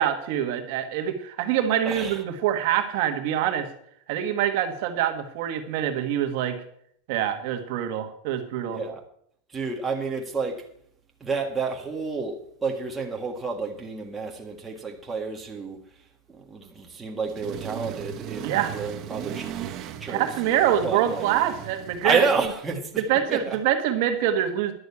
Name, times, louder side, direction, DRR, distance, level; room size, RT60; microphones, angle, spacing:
voice 1, 0.0-3.7 4.1-6.6 7.1-8.8 18.4-18.7 20.1-22.2 23.0-24.7, right 10 dB, 55° right, 1.4 m, -25 dB
voice 2, 1.9-2.2 8.7-9.0 9.5-10.6 11.2-15.8 16.3-19.5 20.0-20.2 20.8-21.3 22.0-23.0 23.3-23.6, right 4 dB, 10° right, 1.6 m, -29 dB
Accelerating revving vroom, 17.2-22.5, right 10 dB, 35° right, 0.9 m, -37 dB
11.0 x 6.3 x 8.4 m
supercardioid pair, 155°, 0 cm